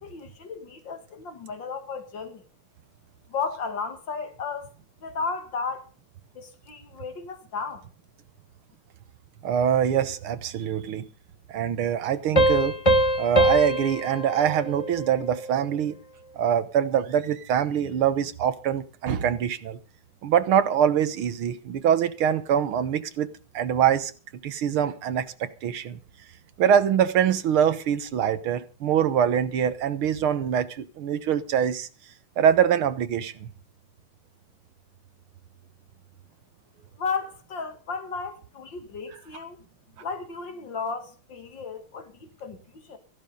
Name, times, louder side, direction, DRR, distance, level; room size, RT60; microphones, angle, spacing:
voice 1, 0.0-2.4 3.3-4.7 5.0-5.9 6.3-7.9 37.0-39.6 40.0-43.0, left 5 dB, 60° left, 2.4 m, -34 dB
voice 2, 9.4-11.1 11.5-12.8 13.2-16.0 16.4-19.8 20.2-24.1 24.4-26.0 26.6-31.9 32.4-33.5, right 9 dB, 85° right, 2.0 m, -24 dB
sound 1, 12.4-15.7, right 1 dB, 20° left, 1.4 m, -23 dB
15.0 x 11.5 x 5.3 m
omnidirectional pair, 2.3 m